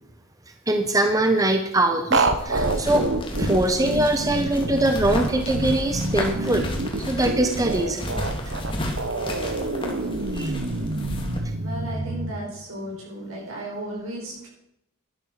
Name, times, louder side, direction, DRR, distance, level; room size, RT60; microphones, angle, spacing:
voice 1, 0.7-3.1 3.4-6.6 7.0-8.1 10.3-10.5, right 1 dB, 15° right, 6 dB, 0.7 m, -22 dB
sound 1, 2.1-12.3, right 2 dB, 60° right, 1.0 m, -27 dB
sound 2, 2.4-11.4, left 1 dB, 25° left, 2.0 m, -31 dB
voice 2, 11.6-14.5, right 1 dB, 75° right, -3 dB, 5.8 m, -34 dB
11.5 x 8.6 x 6.4 m, 0.79 s
head